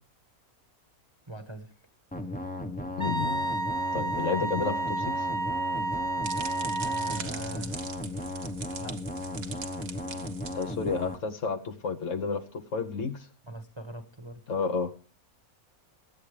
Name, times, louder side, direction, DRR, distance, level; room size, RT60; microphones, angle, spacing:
voice 1, 1.3-1.7 6.8-7.9 8.8-9.2 13.4-14.4, right 2 dB, 20° right, 7 dB, 1.1 m, -42 dB
sound 1, 2.1-11.1, left 1 dB, 5° left, 0.8 m, -36 dB
voice 2, 3.0-3.5 3.9-5.3 10.5-13.2 14.5-14.9, left 5 dB, 60° left, 8 dB, 1.3 m, -31 dB
Wind instrument woodwind instrument, 3.0-7.3, right 2 dB, 45° right, 1.2 m, -31 dB
sound 2, 5.8-11.1, right 6 dB, 70° right, 1.7 m, -42 dB
22.0 x 8.6 x 3.3 m, 0.38 s
omnidirectional pair, 1.6 m